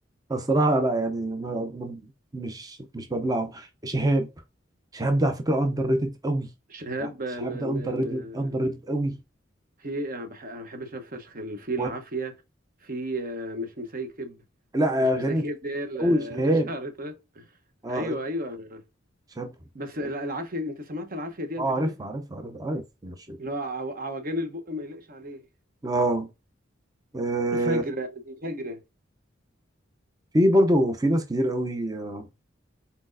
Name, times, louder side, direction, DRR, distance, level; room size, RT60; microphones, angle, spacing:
voice 1, 0.3-2.0 2.3-4.3 4.9-6.5 7.0-7.1 7.4-9.2 11.8-11.9 14.7-15.4 16.0-16.7 17.8-18.1 19.4-19.5 21.6-23.4 25.8-26.3 27.1-27.8 30.3-32.3, right 1 dB, 20° right, 0.6 m, -25 dB
voice 2, 6.7-8.5 9.8-12.3 12.8-14.4 15.1-17.5 17.9-18.8 19.7-21.9 23.4-25.4 27.5-28.8, equal, 45° right, 0.9 m, -33 dB
4.3 x 4.1 x 2.5 m
head